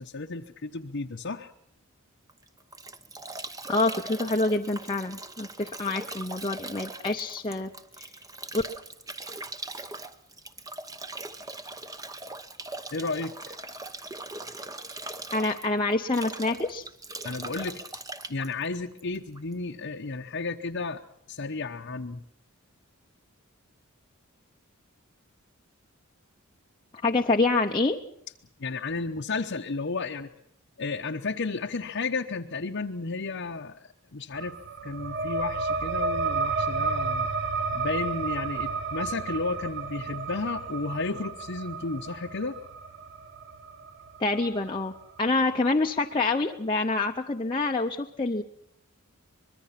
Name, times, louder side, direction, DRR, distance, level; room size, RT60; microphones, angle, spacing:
voice 1, 0.0-1.5 12.9-13.3 17.2-17.8 18.3-21.0 21.3-22.2 28.6-30.3 30.8-34.6 34.8-37.3 37.7-42.6, left 3 dB, 55° left, 1 dB, 0.9 m, -33 dB
Bathtub (filling or washing) / Drip / Trickle dribble, 2.3-19.5, right 2 dB, 15° right, 1.0 m, -40 dB
voice 2, 3.7-7.7 8.0-8.1 8.5-8.6 15.3-16.8 27.0-28.0 44.2-48.4, left 3 dB, 25° left, 1 dB, 0.8 m, -26 dB
sound 1, 34.3-45.5, right 4 dB, 55° right, 1.2 m, -32 dB
25.0 x 21.5 x 5.8 m, 0.71 s
head